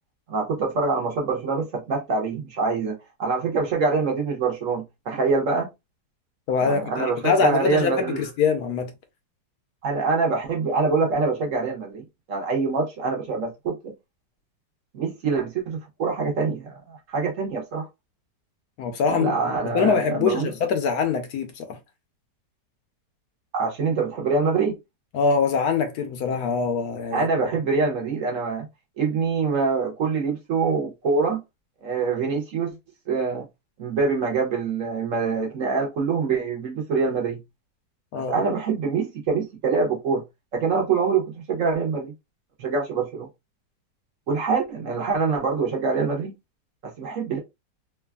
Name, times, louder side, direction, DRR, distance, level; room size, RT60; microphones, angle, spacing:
voice 1, 0.3-5.7 6.6-8.2 9.8-13.9 14.9-17.9 19.1-20.5 23.5-24.8 27.1-28.7 29.0-31.4 31.8-32.8 33.1-33.4 33.8-37.4 38.1-40.2 40.5-42.1 42.6-43.3 44.3-46.3 46.8-47.4, right 4 dB, 60° right, 1.0 m, -25 dB
voice 2, 6.5-8.9 18.8-19.4 19.6-21.8 25.1-27.3 38.1-38.3, left 5 dB, 75° left, 1.0 m, -24 dB
3.2 x 2.3 x 2.2 m
omnidirectional pair, 1.8 m